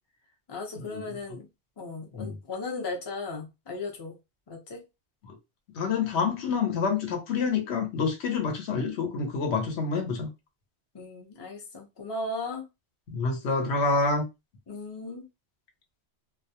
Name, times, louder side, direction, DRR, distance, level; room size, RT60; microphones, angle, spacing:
voice 1, 0.5-1.5 1.8-4.1 4.5-4.8 10.9-12.6 14.7-15.2, left 3 dB, 30° left, 0.5 m, -36 dB
voice 2, 5.7-10.3 13.1-14.2, left 4 dB, 70° left, 0.9 m, -27 dB
2.2 x 2.1 x 2.7 m
omnidirectional pair, 1.2 m